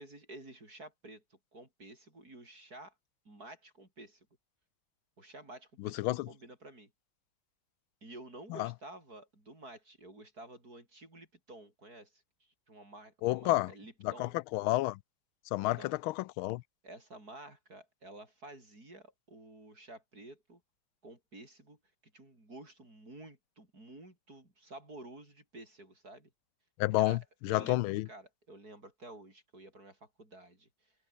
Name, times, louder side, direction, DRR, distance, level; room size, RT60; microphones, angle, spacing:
voice 1, 0.0-3.0 3.3-4.3 5.2-6.9 8.0-14.3 15.6-15.9 16.8-20.6 21.0-21.8 22.1-26.3 26.9-30.9, right 2 dB, 45° right, 7.1 m, -51 dB
voice 2, 5.8-6.3 8.5-8.7 13.2-13.7 14.0-15.0 15.5-16.6 26.8-27.2 27.4-28.1, left 18 dB, 90° left, 1.4 m, -30 dB
omnidirectional pair, 2.2 m